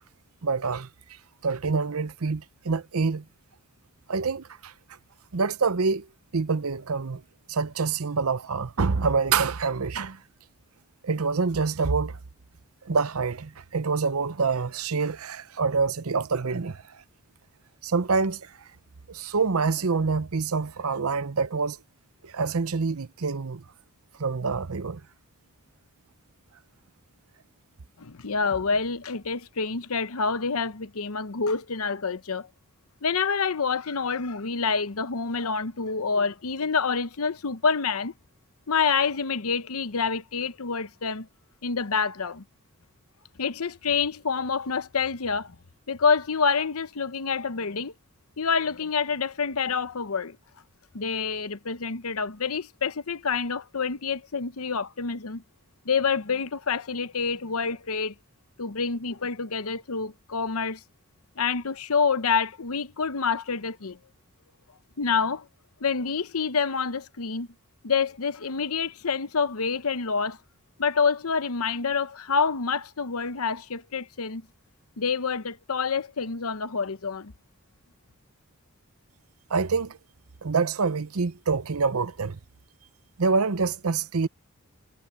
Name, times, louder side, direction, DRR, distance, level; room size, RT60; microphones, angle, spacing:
voice 1, 0.4-0.9 1.4-3.2 4.1-4.7 5.3-6.1 6.3-7.2 7.5-10.2 11.0-12.2 12.8-16.8 17.8-18.5 19.1-21.8 22.2-23.6 24.2-25.0 79.5-80.0 80.4-82.4 83.2-84.3, right 4 dB, 85° right, 0.8 m, -26 dB
voice 2, 28.0-32.5 33.0-38.1 38.7-41.3 41.6-42.4 43.4-45.5 45.9-47.9 48.4-50.4 50.9-55.4 55.8-58.1 58.6-60.8 61.4-64.0 65.0-65.5 65.8-67.5 67.8-70.4 70.8-74.4 75.0-77.3, left 5 dB, 85° left, 0.9 m, -27 dB
head